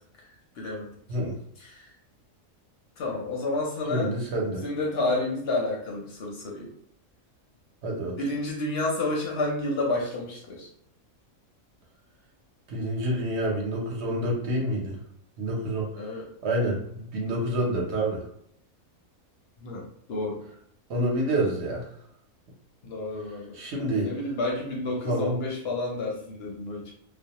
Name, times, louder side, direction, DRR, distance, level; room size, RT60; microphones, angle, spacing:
voice 1, 0.6-0.9 1.6-1.9 3.0-4.1 4.5-6.7 8.2-10.7 15.9-16.2 19.6-20.4 22.8-23.6 24.0-26.9, left 2 dB, 60° left, -1 dB, 0.7 m, -30 dB
voice 2, 3.9-4.6 7.8-8.2 12.7-15.0 15.4-15.9 16.4-18.2 20.9-21.9 23.5-24.1 24.9-25.4, right 1 dB, 55° right, -2 dB, 0.9 m, -28 dB
2.3 x 2.1 x 2.8 m, 0.66 s
omnidirectional pair, 1.5 m